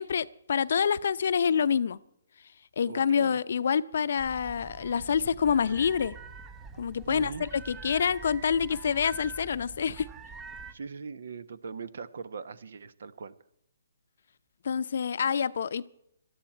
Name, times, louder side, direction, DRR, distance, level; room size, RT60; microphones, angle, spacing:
voice 1, 0.0-2.0 2.8-6.2 6.8-10.1 14.6-15.9, left 7 dB, 65° left, 0.6 m, -27 dB
voice 2, 2.8-3.4 7.1-7.5 10.7-13.3, right 5 dB, 70° right, 1.1 m, -40 dB
sound 1, 4.2-10.7, right 4 dB, 15° right, 0.9 m, -45 dB
18.0 x 13.0 x 4.4 m
hypercardioid pair, 145°, 0 cm